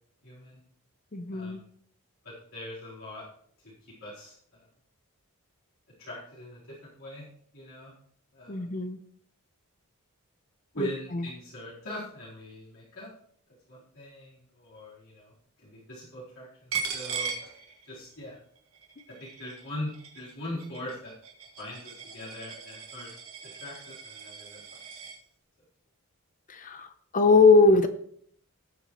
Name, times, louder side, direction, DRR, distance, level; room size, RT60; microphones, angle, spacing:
voice 1, 0.2-0.6 1.3-1.6 2.2-3.2 4.0-4.6 6.0-7.3 7.5-7.9 8.3-8.7 10.7-13.1 13.7-15.3 15.6-17.3 17.8-18.4 19.2-21.1 21.6-23.1 23.5-24.8, left 1 dB, 65° left, -8 dB, 3.9 m, -41 dB
voice 2, 1.1-1.6 8.5-9.0 10.8-10.9 11.1-11.2 26.5-27.9, left 3 dB, 35° left, 10 dB, 0.7 m, -21 dB
Coin (dropping), 16.7-18.2 18.6-25.2, right 5 dB, 70° right, 2.1 m, -39 dB
18.5 x 7.2 x 3.1 m, 0.64 s
head